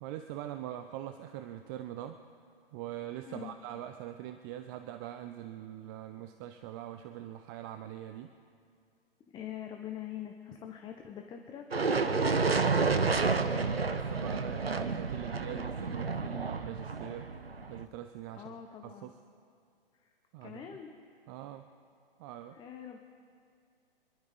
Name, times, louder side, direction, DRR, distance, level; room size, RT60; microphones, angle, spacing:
voice 1, 0.0-2.2 2.7-8.3 13.0-17.3 17.7-18.6 18.8-19.1 20.3-20.6 21.3-21.7 22.2-22.6, right 12 dB, 20° right, 8 dB, 0.5 m, -43 dB
voice 2, 3.3-3.6 9.3-12.3 18.3-19.2 19.9-20.1 20.4-20.9 22.5-23.0, left 9 dB, 15° left, 4 dB, 0.9 m, -44 dB
sound 1, 11.7-17.9, right 4 dB, 85° right, 1.0 m, -30 dB
26.5 x 11.5 x 3.9 m, 2.3 s
figure-of-eight pair, 115°, 29 cm